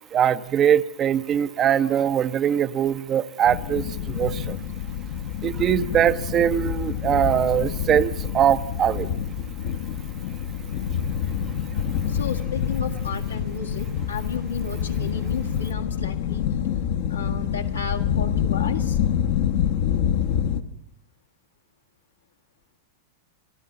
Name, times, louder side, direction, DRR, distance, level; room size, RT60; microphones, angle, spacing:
voice 1, 0.1-4.6 5.4-9.1, right 9 dB, 30° right, 13 dB, 0.7 m, -22 dB
sound 1, 3.5-20.6, left 8 dB, 50° left, 1.0 m, -27 dB
voice 2, 12.1-16.5 17.1-19.0, left 5 dB, 75° left, 4 dB, 1.8 m, -33 dB
30.0 x 12.5 x 7.1 m, 0.77 s
figure-of-eight pair, 90°, 0 cm